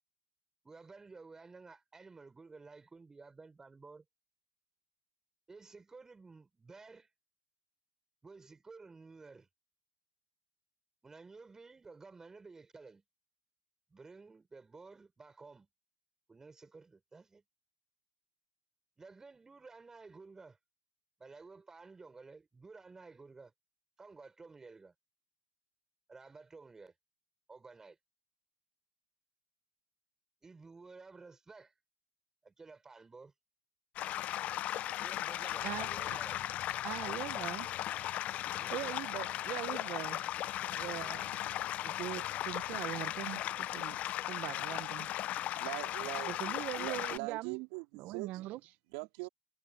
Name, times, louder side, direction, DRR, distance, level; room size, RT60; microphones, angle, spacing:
voice 1, 0.6-4.0 5.5-7.1 8.2-9.5 11.0-13.0 13.9-15.7 16.3-17.4 19.0-20.6 21.2-23.5 24.0-24.9 26.1-26.9 27.5-28.0 30.4-31.7 32.4-33.3 35.0-36.4 38.6-38.7, right 4 dB, 15° right, 6.0 m, -53 dB
sound 1, 34.0-47.2, left 13 dB, 45° left, 0.8 m, -37 dB
voice 2, 35.4-36.2 36.8-37.7 38.7-40.2 40.7-44.0 44.3-45.1 46.3-47.7 47.9-48.7 49.2-49.3, right 16 dB, 55° right, 1.2 m, -42 dB
voice 3, 45.6-48.3 48.9-49.3, right 30 dB, 70° right, 3.3 m, -42 dB
hypercardioid pair, 100°, 3 cm